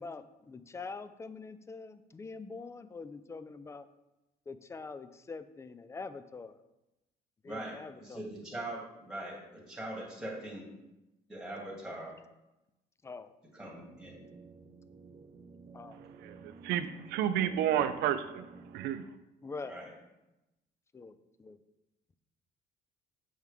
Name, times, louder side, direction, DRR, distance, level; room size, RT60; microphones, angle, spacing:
voice 1, 0.0-3.9 4.5-6.6 7.4-8.3 13.0-13.3 15.7-16.0 19.4-19.8 20.9-21.6, left 4 dB, 15° left, 12 dB, 0.4 m, -44 dB
voice 2, 7.4-10.7 11.3-12.1 13.5-14.3 19.6-19.9, right 1 dB, 5° right, -4 dB, 2.4 m, -42 dB
sound 1, 13.7-18.9, right 4 dB, 40° right, 0.6 m, -52 dB
voice 3, 16.1-19.0, right 10 dB, 85° right, 11 dB, 0.5 m, -31 dB
7.4 x 4.7 x 3.5 m, 0.95 s
cardioid pair, 110°, 17 cm